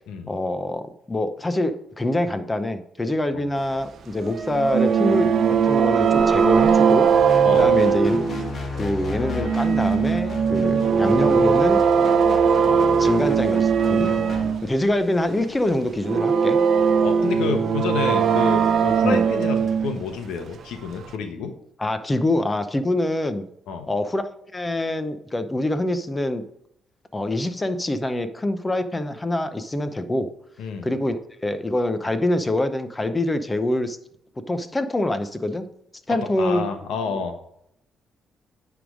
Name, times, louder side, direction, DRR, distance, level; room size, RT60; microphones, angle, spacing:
voice 1, 0.3-5.4 5.6-7.1 7.5-8.2 8.8-11.8 12.6-14.1 14.6-16.6 19.0-19.3 21.8-23.5 23.9-26.4 27.1-30.3 30.8-34.0 34.5-35.7 36.1-36.7 37.1-37.2, left 1 dB, 20° left, 10 dB, 0.7 m, -25 dB
sound 1, 4.2-8.8 9.2-14.7 14.9-15.0 16.0-20.0 21.1-21.2, right 6 dB, 60° right, 0.7 m, -19 dB
sound 2, 7.1-14.5, left 2 dB, 45° left, 1.4 m, -32 dB
voice 2, 17.0-21.5 23.7-23.9 30.6-30.9 36.4-37.3, left 5 dB, 85° left, 6 dB, 1.0 m, -29 dB
9.7 x 3.6 x 6.2 m, 0.74 s
cardioid pair, 90°, 0 cm